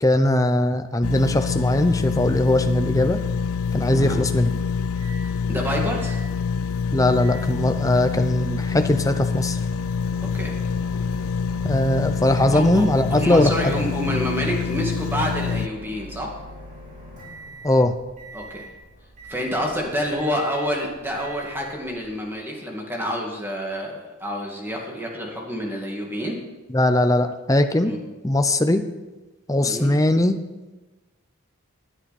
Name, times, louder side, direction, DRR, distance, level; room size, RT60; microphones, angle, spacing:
voice 1, 0.0-3.2 3.7-4.5 6.9-9.6 11.6-13.7 17.6-17.9 26.7-27.9 28.2-28.8 29.5-30.4, left 1 dB, 15° left, 7 dB, 0.7 m, -20 dB
sound 1, 1.0-15.7, left 6 dB, 75° left, 0.4 m, -26 dB
Microwave oven, 4.4-22.3, equal, 35° right, 3.5 m, -43 dB
voice 2, 5.5-6.2 10.3-10.5 12.5-16.3 18.3-18.7 19.3-26.4 27.8-28.0 29.6-29.9, equal, 10° right, -1 dB, 2.2 m, -28 dB
19.0 x 9.9 x 4.3 m, 1.1 s
head